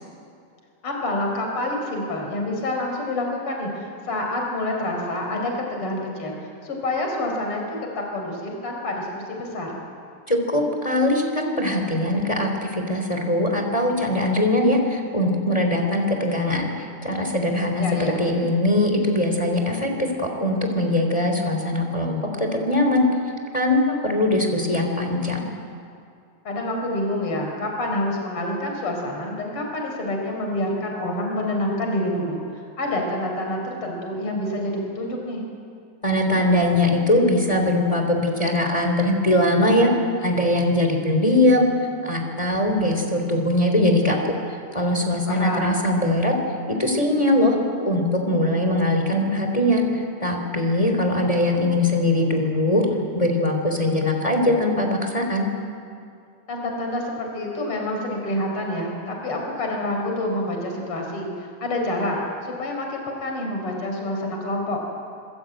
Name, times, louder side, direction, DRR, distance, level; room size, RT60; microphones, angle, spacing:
voice 1, 0.8-6.4 6.6-9.8 17.8-18.3 26.5-32.4 32.8-35.4 45.3-45.8 56.5-64.8, left 1 dB, 40° left, 1 dB, 5.4 m, -27 dB
voice 2, 10.3-23.0 23.5-25.5 36.0-39.9 40.2-41.6 42.0-44.2 44.5-46.3 46.7-52.8 53.1-55.5, left 1 dB, 10° left, 3 dB, 3.1 m, -21 dB
26.0 x 24.0 x 9.1 m, 2.5 s
omnidirectional pair, 3.8 m